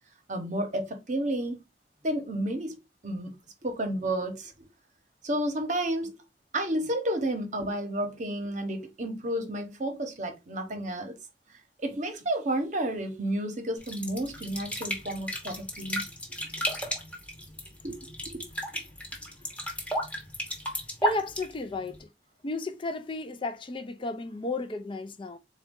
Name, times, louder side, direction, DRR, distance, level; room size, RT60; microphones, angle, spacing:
voice 1, 0.3-1.6 2.0-2.8 3.0-3.4 3.6-4.7 5.2-6.1 6.5-11.1 11.8-16.0 17.8-18.4, right 1 dB, 45° right, 0.9 m, -31 dB
sound 1, 13.8-22.0, equal, 10° left, 0.9 m, -34 dB
voice 2, 21.0-22.1 22.4-25.4, left 3 dB, 30° left, 0.4 m, -33 dB
4.0 x 2.3 x 3.6 m
head